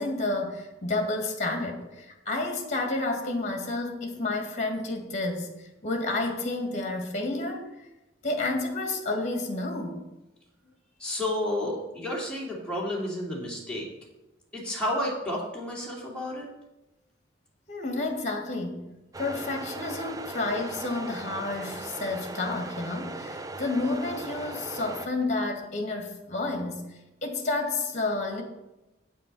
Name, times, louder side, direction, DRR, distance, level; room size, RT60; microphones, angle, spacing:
voice 1, 0.0-5.5 5.8-7.7 8.2-10.0 17.7-18.9 19.2-28.4, left 2 dB, 40° left, 3 dB, 1.7 m, -30 dB
voice 2, 11.0-13.9 14.5-16.5, left 1 dB, 5° left, -4 dB, 2.5 m, -31 dB
sound 1, 19.1-25.1, right 2 dB, 20° right, 0.4 m, -38 dB
8.3 x 7.4 x 5.4 m, 1.0 s
head